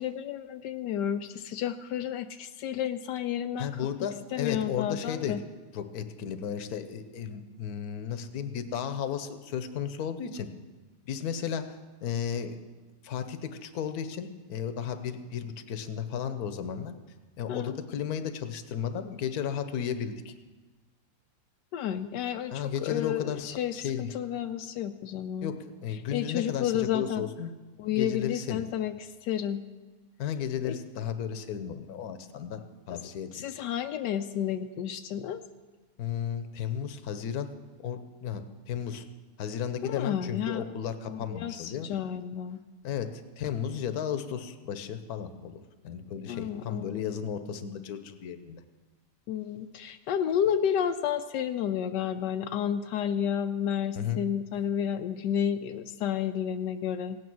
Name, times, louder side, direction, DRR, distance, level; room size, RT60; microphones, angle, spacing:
voice 1, 0.0-3.7 4.3-5.4 17.5-17.8 21.7-25.5 26.1-27.3 27.8-29.6 30.6-30.8 32.9-33.0 33.3-35.4 39.8-40.6 41.1-42.6 46.3-47.1 49.3-57.2, left 9 dB, 85° left, 8 dB, 1.2 m, -31 dB
voice 2, 3.6-5.4 5.7-10.5 11.1-12.6 13.0-16.9 17.4-20.3 22.5-24.1 25.4-25.6 25.8-27.5 27.9-28.6 30.2-33.5 36.0-37.5 37.8-39.0 39.4-41.9 42.8-48.6 54.0-54.2, left 8 dB, 70° left, 9 dB, 1.3 m, -34 dB
17.0 x 9.4 x 6.1 m, 1.3 s
omnidirectional pair, 1.8 m